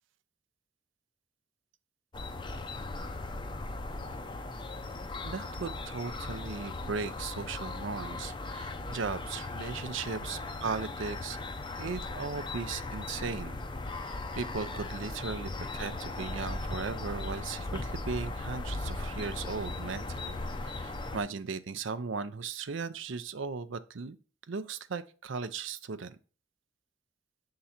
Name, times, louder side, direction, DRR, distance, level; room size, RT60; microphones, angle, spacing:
sound 1, 2.1-21.2, left 2 dB, 25° left, 0.5 m, -38 dB
voice 1, 5.2-11.4 11.8-13.6 13.9-20.4 20.6-24.2 24.5-26.2, right 5 dB, 70° right, 0.5 m, -37 dB
6.9 x 3.8 x 4.3 m
head